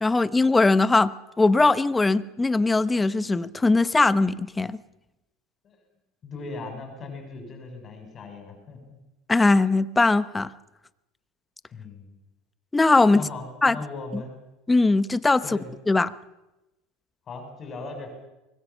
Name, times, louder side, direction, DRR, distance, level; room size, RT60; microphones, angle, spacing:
voice 1, 0.0-4.8 9.3-10.5 12.7-13.2 13.6-13.8 14.1-14.2 14.7-15.4 15.9-16.1, left 3 dB, 15° left, 16 dB, 0.9 m, -20 dB
voice 2, 6.2-9.0 11.7-12.2 13.1-14.3 15.4-15.7 17.3-18.1, left 3 dB, 35° left, 4 dB, 7.1 m, -38 dB
24.5 x 21.0 x 7.2 m, 0.98 s
supercardioid pair, 115°, 0 cm